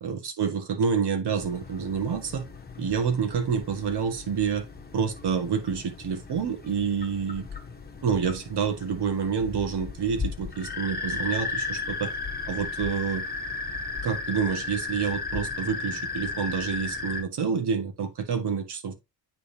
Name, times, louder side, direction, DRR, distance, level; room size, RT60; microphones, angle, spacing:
voice 1, 0.0-2.5 2.8-4.7 4.9-7.5 8.0-12.1 12.5-13.3 14.0-18.9, right 6 dB, 65° right, 1.7 m, -28 dB
sound 1, 1.4-17.2, left 4 dB, 20° left, 1.3 m, -35 dB
9.2 x 3.6 x 2.8 m
cardioid pair, 85°, 42 cm